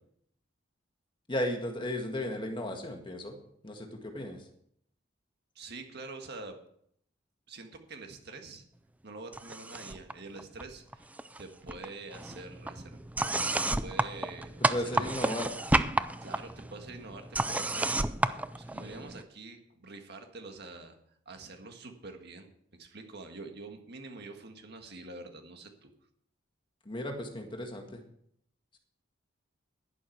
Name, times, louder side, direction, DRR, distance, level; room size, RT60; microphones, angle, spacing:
voice 1, 1.3-3.4 3.6-4.4 14.7-15.5 26.8-28.0, left 1 dB, 25° left, 4 dB, 1.8 m, -35 dB
voice 2, 5.5-6.6 7.5-8.6 9.0-15.4 16.2-17.9 18.3-20.9 21.2-22.5 22.8-25.9, right 3 dB, 55° right, 4 dB, 1.8 m, -46 dB
sound 1, 9.3-10.1 10.4-11.4 11.7-19.2, right 2 dB, 10° right, 0.4 m, -31 dB
11.5 x 11.0 x 4.7 m, 0.68 s
head